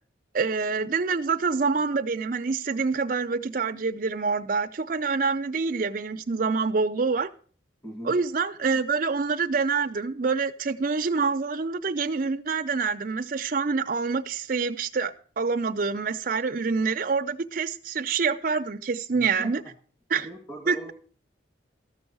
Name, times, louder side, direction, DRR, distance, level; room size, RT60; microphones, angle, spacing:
voice 1, 0.3-7.3 8.0-19.6 20.1-20.3 20.7-20.8, right 4 dB, 50° right, 0.5 m, -26 dB
voice 2, 7.8-8.2 19.1-19.5 20.1-20.9, right 1 dB, 20° left, 2.5 m, -40 dB
13.5 x 6.3 x 6.0 m
head